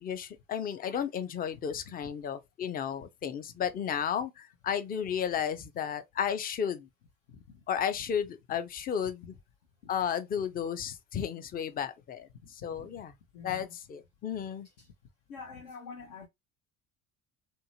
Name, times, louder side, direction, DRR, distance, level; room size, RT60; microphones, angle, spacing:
voice 1, 0.0-6.9 7.7-9.3 9.9-12.3 12.6-13.1 13.4-14.7, left 8 dB, 25° left, 0.4 m, -33 dB
voice 2, 13.3-13.8 14.8-14.9 15.3-16.3, left 5 dB, 65° left, 0.7 m, -46 dB
2.6 x 2.1 x 2.7 m
figure-of-eight pair, 60°, 41 cm